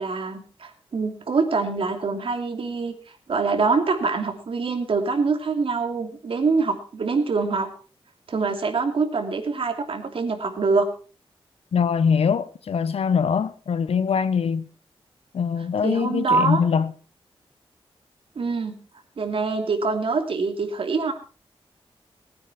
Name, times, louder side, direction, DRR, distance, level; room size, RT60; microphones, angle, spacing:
voice 1, 0.0-2.9 3.3-7.7 8.3-10.9 15.8-16.6 18.4-18.7 19.2-21.1, right 4 dB, 65° right, 2.8 m, -24 dB
voice 2, 11.7-14.7 15.3-16.9, left 6 dB, 80° left, 1.0 m, -22 dB
19.5 x 9.2 x 4.3 m
wide cardioid pair, 90°, 10 cm